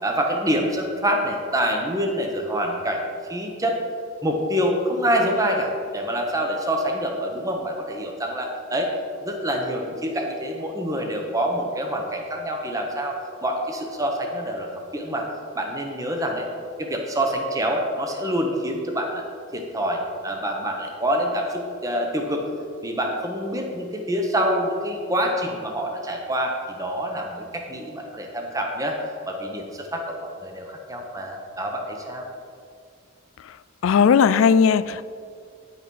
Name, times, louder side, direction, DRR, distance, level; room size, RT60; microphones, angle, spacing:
voice 1, 0.0-3.0 3.3-3.8 4.2-8.9 9.2-13.2 13.4-15.3 15.5-16.5 16.8-19.2 19.5-22.4 22.8-29.0 29.3-32.3, equal, 15° right, 2 dB, 0.9 m, -26 dB
voice 2, 33.8-35.0, left 6 dB, 85° left, 15 dB, 0.3 m, -17 dB
10.0 x 5.8 x 4.7 m, 2.2 s
head